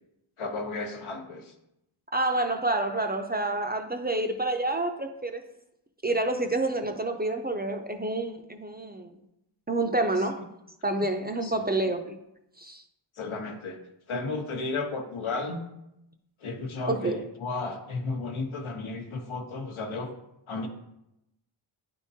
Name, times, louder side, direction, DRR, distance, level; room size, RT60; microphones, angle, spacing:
voice 1, 0.4-1.5 11.4-11.6 13.2-13.8 14.1-15.6 16.4-20.1 20.5-20.7, left 3 dB, 80° left, 4 dB, 0.9 m, -33 dB
voice 2, 2.1-5.4 6.0-9.1 9.7-10.4 10.8-12.2 12.6-12.8 16.9-17.2, right 2 dB, 20° right, 5 dB, 0.4 m, -28 dB
9.8 x 3.6 x 2.7 m, 0.85 s
wide cardioid pair, 85°, 47 cm